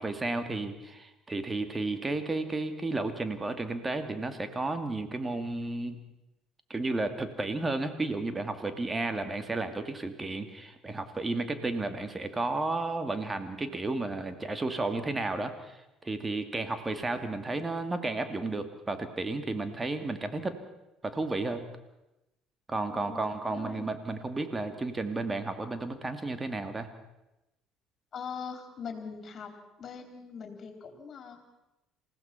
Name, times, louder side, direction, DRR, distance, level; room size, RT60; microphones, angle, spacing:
voice 1, 0.0-6.0 6.7-20.5 21.0-21.6 22.7-26.9, right 2 dB, 20° right, 8 dB, 2.5 m, -32 dB
voice 2, 22.9-23.9 28.1-29.5 29.8-31.4, left 6 dB, 45° left, 5 dB, 3.9 m, -42 dB
28.0 x 16.0 x 5.9 m, 0.96 s
figure-of-eight pair, 55°, 0 cm